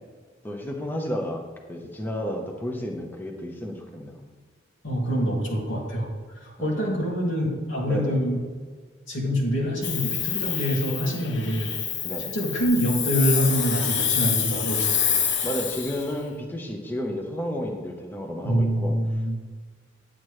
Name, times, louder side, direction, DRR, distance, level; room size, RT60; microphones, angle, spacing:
voice 1, 0.4-4.2 6.6-6.8 7.9-8.2 12.0-12.4 15.4-19.0, equal, 10° left, 0 dB, 0.9 m, -32 dB
voice 2, 4.8-6.1 6.4-8.4 9.1-11.7 12.3-14.9 18.4-19.4, equal, 90° left, -3 dB, 2.5 m, -25 dB
Hiss, 9.8-16.1, left 7 dB, 65° left, 0.9 m, -27 dB
10.5 x 7.7 x 3.2 m, 1.6 s
head